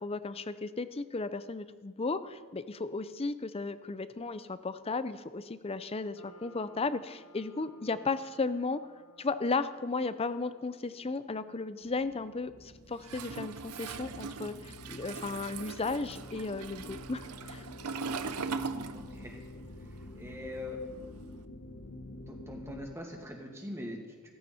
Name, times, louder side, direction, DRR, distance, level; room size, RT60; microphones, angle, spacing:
voice 1, 0.0-8.8 9.2-17.7, left 3 dB, 25° left, 13 dB, 0.5 m, -35 dB
sound 1, 6.2-20.6, right 1 dB, 85° left, 5.2 m, -63 dB
sound 2, 11.8-23.0, left 1 dB, 60° left, 1.0 m, -48 dB
Toilet flush, 13.0-19.5 19.7-21.3, right 5 dB, 85° right, 0.7 m, -40 dB
voice 2, 18.7-19.4 19.8-19.9 20.1-20.8 22.3-24.3, left 1 dB, 10° right, 0 dB, 2.1 m, -43 dB
16.0 x 15.0 x 4.4 m, 1.5 s
head